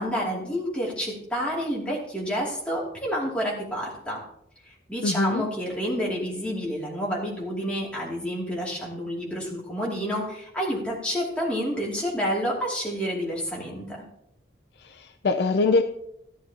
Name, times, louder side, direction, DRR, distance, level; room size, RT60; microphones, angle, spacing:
voice 1, 0.0-4.2 4.6-14.0, equal, 5° left, -4 dB, 2.6 m, -29 dB
voice 2, 5.0-5.4 15.0-15.8, left 3 dB, 55° left, 7 dB, 0.5 m, -23 dB
13.5 x 11.5 x 2.9 m, 0.77 s
head